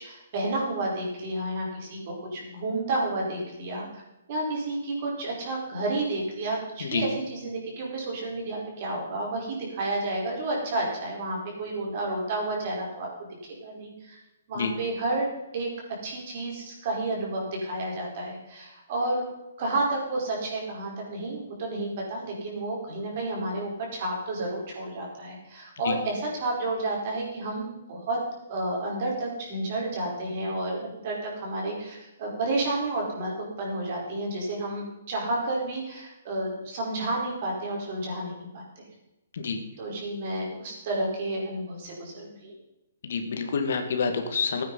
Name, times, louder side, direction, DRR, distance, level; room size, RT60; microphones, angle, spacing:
voice 1, 0.0-4.0 4.3-14.2 14.5-15.3 15.5-15.7 16.0-19.2 19.6-28.2 28.5-38.8 39.8-42.5, right 2 dB, 40° right, -2 dB, 4.9 m, -31 dB
voice 2, 43.0-44.6, left 5 dB, 65° left, 5 dB, 2.1 m, -28 dB
15.0 x 9.2 x 5.6 m, 0.96 s
hypercardioid pair, 160°, 0 cm